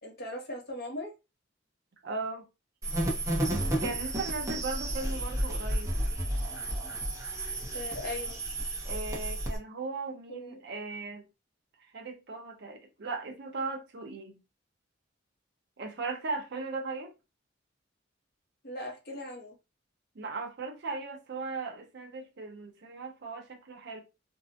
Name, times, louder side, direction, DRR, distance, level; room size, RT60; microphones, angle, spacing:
voice 1, 0.0-1.1 7.7-8.4 10.3-10.6 18.6-19.5, left 1 dB, 55° left, 0.8 m, -39 dB
voice 2, 2.0-2.5 3.8-5.9 8.8-11.2 11.8-14.4 15.8-17.1 20.1-24.0, right 3 dB, 60° right, 0.6 m, -38 dB
sound 1, 2.8-9.6, right 1 dB, 15° right, 0.7 m, -32 dB
2.6 x 2.1 x 2.6 m
head